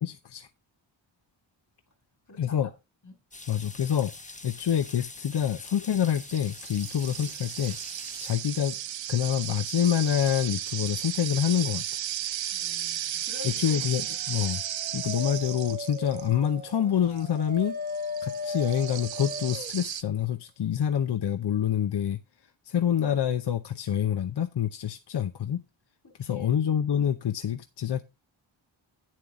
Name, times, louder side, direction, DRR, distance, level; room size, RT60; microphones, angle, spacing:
voice 1, 0.0-0.5 2.4-2.7 3.5-4.1 4.4-7.8 8.2-8.8 9.1-12.0 13.6-14.6 14.9-17.7 18.2-22.2 22.7-25.6 26.2-28.0, left 9 dB, 60° left, 0.7 m, -27 dB
voice 2, 2.3-2.6 3.0-3.2 12.5-13.8 14.1-14.2 26.0-26.8, left 3 dB, 40° left, 2.3 m, -47 dB
sound 1, 3.3-8.3, left 2 dB, 15° left, 0.8 m, -44 dB
sound 2, 5.3-5.5 6.1-16.5 17.2-17.3 17.9-20.0, right 11 dB, 70° right, 0.6 m, -35 dB
Dog, 14.1-19.7, left 1 dB, 20° right, 0.9 m, -37 dB
9.4 x 7.5 x 3.6 m
wide cardioid pair, 100°, 47 cm